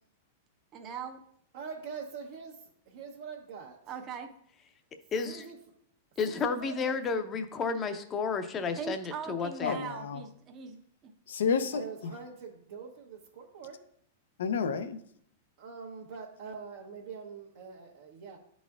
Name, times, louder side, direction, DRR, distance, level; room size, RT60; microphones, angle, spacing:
voice 1, 0.7-1.2 3.9-4.3 8.8-11.1, right 7 dB, 35° right, 4 dB, 0.7 m, -40 dB
voice 2, 1.5-3.8 5.2-5.6 6.2-7.0 11.7-13.8 15.6-18.4, right 5 dB, 70° right, -3 dB, 0.9 m, -44 dB
voice 3, 5.1-5.4 6.2-9.8, left 5 dB, 25° left, 8 dB, 0.6 m, -32 dB
voice 4, 9.6-10.2 11.3-12.1 14.4-15.0, left 6 dB, 80° left, 10 dB, 0.5 m, -30 dB
10.5 x 4.1 x 2.4 m, 0.66 s
hypercardioid pair, 120°, 0 cm